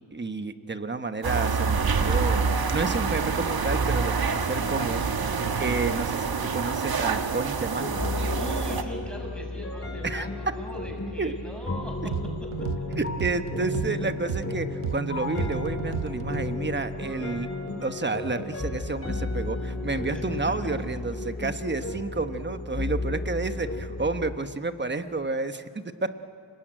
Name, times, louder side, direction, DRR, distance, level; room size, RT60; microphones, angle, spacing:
voice 1, 0.1-2.4 2.7-5.1 5.6-8.1 10.0-10.3 11.2-11.3 13.0-17.5 17.8-25.9, right 3 dB, 20° right, 9 dB, 1.1 m, -30 dB
sound 1, 1.2-8.8, right 5 dB, 45° right, 1.4 m, -26 dB
sound 2, 7.8-24.4, left 2 dB, 30° left, 3.7 m, -33 dB
voice 2, 8.4-12.1 20.1-20.2, equal, ahead, 0 dB, 6.1 m, -40 dB
sound 3, 12.1-16.6, right 9 dB, 90° right, 1.0 m, -34 dB
30.0 x 20.5 x 9.0 m, 2.6 s
wide cardioid pair, 125°, 49 cm